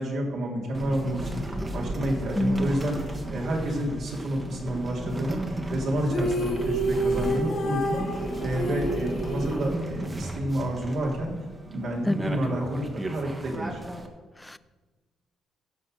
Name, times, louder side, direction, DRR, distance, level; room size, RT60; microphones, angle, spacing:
voice 1, 0.0-8.0 8.4-11.3 11.7-13.8, right 1 dB, 70° right, -2 dB, 2.7 m, -29 dB
sound 1, 0.7-14.1, right 1 dB, 20° right, 1.5 m, -35 dB
voice 2, 2.4-2.8 12.1-12.2 14.4-14.6, left 1 dB, 10° left, 16 dB, 0.5 m, -26 dB
sound 2, 6.1-10.3, right 1 dB, 70° left, 3.7 m, -29 dB
15.5 x 5.7 x 6.3 m, 1.3 s
cardioid pair, 90°, 0 cm